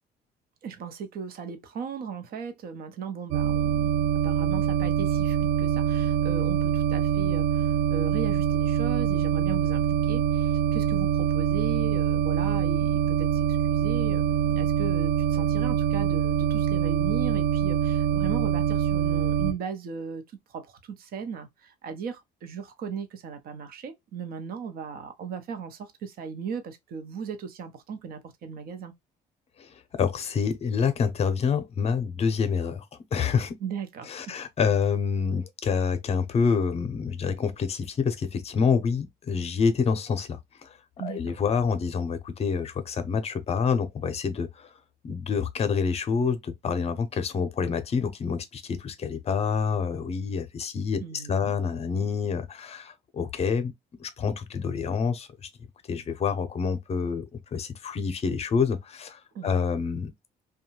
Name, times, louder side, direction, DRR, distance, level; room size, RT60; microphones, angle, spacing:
voice 1, 0.6-20.2 20.5-28.9 33.6-34.3 41.0-41.4 51.0-51.5 59.3-59.6, right 6 dB, 60° right, 0.8 m, -37 dB
sound 1, 3.3-19.5, right 9 dB, 80° right, 0.4 m, -24 dB
voice 2, 29.6-32.8 33.1-33.5 34.1-40.8 41.0-44.7 45.0-53.7 54.0-55.5 55.9-60.1, left 6 dB, 40° left, 0.7 m, -27 dB
2.6 x 2.3 x 2.9 m
cardioid pair, 110°, 17 cm